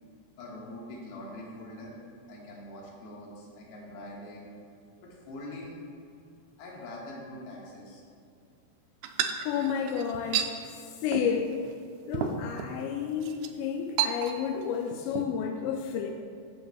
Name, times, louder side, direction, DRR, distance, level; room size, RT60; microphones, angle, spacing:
voice 1, 0.4-2.0 2.3-4.5 5.0-5.9 6.6-8.0, left 1 dB, 70° left, -4 dB, 3.2 m, -43 dB
sound 1, 9.0-10.5 11.1-11.4 11.7-11.8 12.1-12.7 13.2-13.5 14.0-14.6 14.9-15.3, right 9 dB, 90° right, 2.1 m, -31 dB
voice 2, 9.5-11.6 12.1-16.1, left 7 dB, 90° left, 3 dB, 2.8 m, -31 dB
12.5 x 7.9 x 2.3 m, 2.5 s
omnidirectional pair, 4.9 m